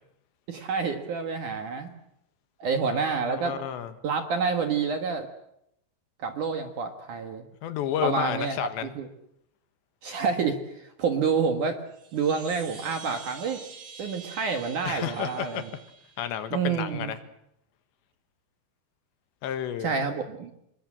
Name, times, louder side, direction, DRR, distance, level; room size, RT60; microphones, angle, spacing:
voice 1, 0.5-1.9 2.6-3.5 4.0-5.3 6.2-7.4 8.0-9.1 10.0-11.8 12.1-13.6 14.0-15.6 16.5-17.1 19.8-20.5, right 5 dB, 60° right, 6 dB, 2.4 m, -28 dB
voice 2, 2.8-3.9 7.6-8.9 14.8-15.7 16.2-17.2 19.4-20.0, left 10 dB, 75° left, 10 dB, 3.5 m, -31 dB
Chime, 11.9-16.6, right 5 dB, 85° right, 6.2 m, -46 dB
26.5 x 22.5 x 7.6 m, 0.78 s
omnidirectional pair, 5.4 m